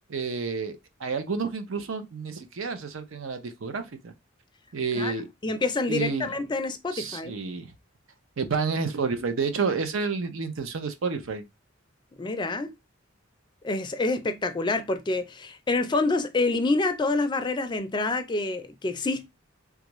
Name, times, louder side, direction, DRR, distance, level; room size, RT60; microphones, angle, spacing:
voice 1, 0.1-4.1 4.7-5.3 5.9-6.3 6.9-7.7 8.4-11.4, right 4 dB, 75° right, 0.6 m, -30 dB
voice 2, 5.4-7.3 12.2-12.7 13.6-19.3, left 3 dB, 20° left, 0.4 m, -27 dB
3.5 x 2.4 x 3.0 m
head